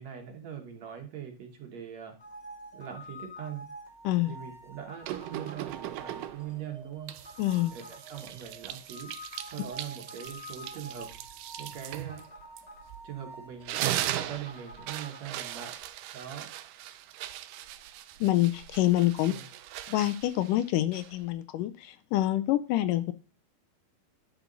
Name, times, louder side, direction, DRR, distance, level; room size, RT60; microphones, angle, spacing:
voice 1, 0.0-2.2 2.7-3.7 4.3-7.1 7.7-9.1 9.5-11.1 11.6-12.2 13.0-15.7 16.1-16.5 19.3-19.5, right 9 dB, 60° right, 3 dB, 2.3 m, -42 dB
sound 1, 2.2-15.7, equal, 50° left, 0.4 m, -48 dB
voice 2, 4.0-4.4 7.4-7.8 18.2-19.3 19.9-23.1, left 15 dB, 80° left, 12 dB, 2.2 m, -26 dB
sound 2, 5.0-6.6 7.1-13.1 13.5-21.3, right 13 dB, 80° right, 2.2 m, -39 dB
10.5 x 6.9 x 4.0 m, 0.35 s
omnidirectional pair, 3.8 m